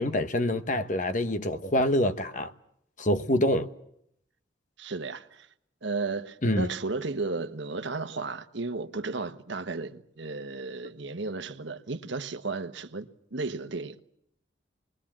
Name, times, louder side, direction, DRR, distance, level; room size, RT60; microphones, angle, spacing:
voice 1, 0.0-2.5 3.0-3.7 6.4-6.7, left 1 dB, 40° left, 1.1 m, -26 dB
voice 2, 4.8-5.5 5.8-14.0, right 3 dB, 70° right, 1.2 m, -34 dB
28.0 x 21.5 x 7.5 m
head